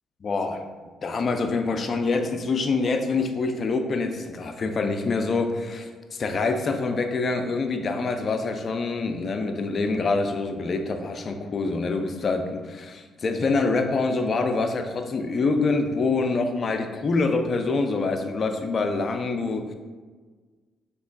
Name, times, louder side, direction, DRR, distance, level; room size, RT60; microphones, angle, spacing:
voice 1, 0.2-0.7 1.0-19.7, left 3 dB, 50° left, 6 dB, 0.5 m, -25 dB
6.1 x 3.0 x 2.3 m, 1.4 s
hypercardioid pair, 50°, 0 cm